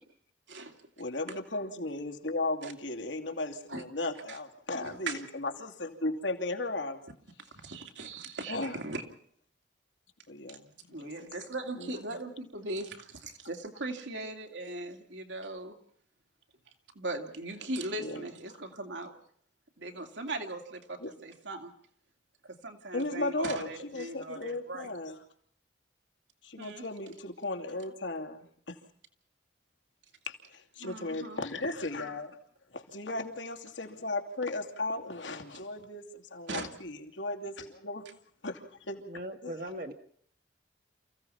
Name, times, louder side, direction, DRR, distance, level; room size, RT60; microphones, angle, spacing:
voice 1, 1.0-7.0 8.5-8.8 10.3-11.3 11.8-12.0 18.0-18.2 21.0-21.1 22.9-25.2 26.4-28.8 30.3-32.4 32.7-38.1 38.4-39.0 39.4-39.5, left 2 dB, 80° left, 3 dB, 2.8 m, -36 dB
voice 2, 4.8-5.1 7.5-9.0 10.5-10.6 10.9-15.8 16.9-19.1 19.8-21.7 22.4-24.9 26.6-26.8 30.8-31.4 36.5-36.7, right 2 dB, 75° right, 4 dB, 2.8 m, -39 dB
voice 3, 39.1-39.9, right 1 dB, 50° right, 5 dB, 1.6 m, -39 dB
28.5 x 16.0 x 5.7 m, 0.63 s
head